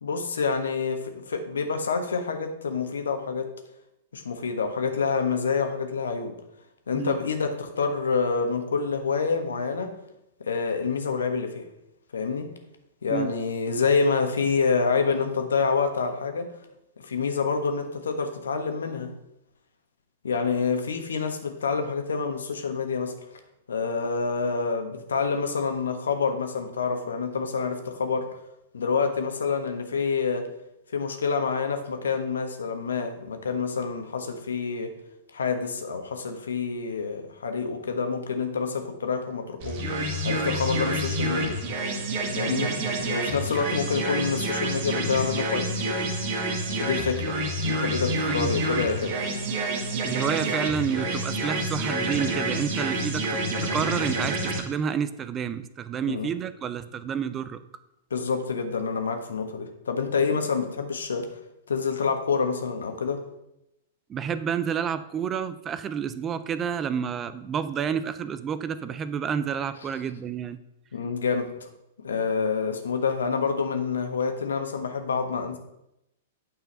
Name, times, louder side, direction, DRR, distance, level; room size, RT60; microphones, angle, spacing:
voice 1, 0.0-3.5 4.1-6.3 6.9-9.9 10.4-11.7 12.1-12.5 13.0-16.5 17.0-19.1 20.2-23.4 23.7-28.4 28.7-30.4 30.9-34.9 35.3-39.8 40.2-41.6 42.4-42.8 43.0-46.1 46.8-49.2 56.0-56.3 58.1-61.3 61.7-63.2 70.9-71.7 72.0-75.6, left 5 dB, 75° left, 6 dB, 1.3 m, -27 dB
sound 1, 39.6-54.6, right 1 dB, 50° right, 2.1 m, -28 dB
voice 2, 50.0-57.6 64.1-70.6, right 7 dB, 25° right, 13 dB, 0.5 m, -29 dB
9.0 x 5.5 x 5.5 m, 0.85 s
figure-of-eight pair, 105°, 0 cm